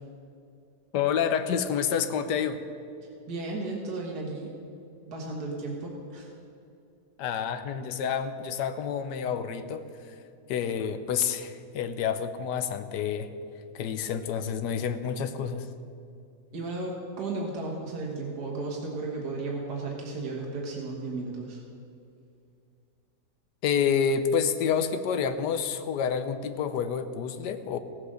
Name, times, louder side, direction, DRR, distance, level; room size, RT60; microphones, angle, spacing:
voice 1, 0.9-2.6 7.2-10.1 10.5-13.3 13.7-15.7 23.6-27.8, left 7 dB, 90° left, 10 dB, 1.4 m, -28 dB
voice 2, 3.3-4.5 5.1-6.3 16.5-21.6, right 3 dB, 70° right, -2 dB, 2.0 m, -34 dB
16.5 x 7.6 x 6.4 m, 2.5 s
omnidirectional pair, 1.8 m